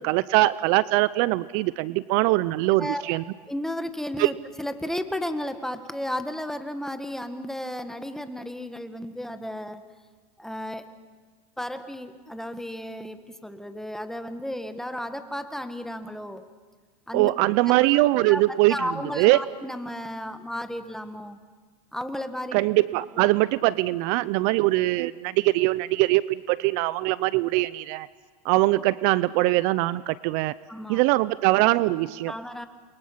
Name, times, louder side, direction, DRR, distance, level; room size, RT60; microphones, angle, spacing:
voice 1, 0.0-3.2 4.2-4.3 17.1-18.8 19.2-19.4 22.5-28.1 28.4-30.5 30.9-32.3, right 19 dB, 55° right, 18 dB, 0.6 m, -22 dB
voice 2, 2.7-3.2 3.5-9.8 10.4-10.8 11.6-16.5 17.1-17.3 17.9-18.0 18.3-21.4 21.9-22.6 23.1-23.2 30.7-31.0 32.3-32.7, left 1 dB, ahead, 9 dB, 1.5 m, -33 dB
29.0 x 23.5 x 5.8 m, 1.5 s
hypercardioid pair, 110°, 21 cm